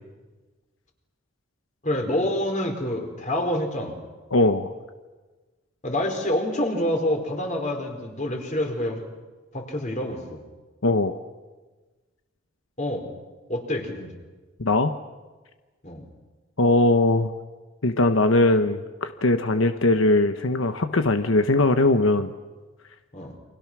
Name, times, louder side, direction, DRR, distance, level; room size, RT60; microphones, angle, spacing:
voice 1, 1.8-4.0 5.8-9.0 9.5-10.4 12.8-13.1 13.5-14.1 15.8-16.0 23.1-23.3, left 1 dB, 40° left, 3 dB, 4.6 m, -27 dB
voice 2, 4.3-4.7 10.8-11.1 14.6-15.0 16.6-17.3 17.8-22.3, left 2 dB, 85° left, 8 dB, 1.1 m, -20 dB
29.5 x 25.0 x 6.2 m, 1.3 s
head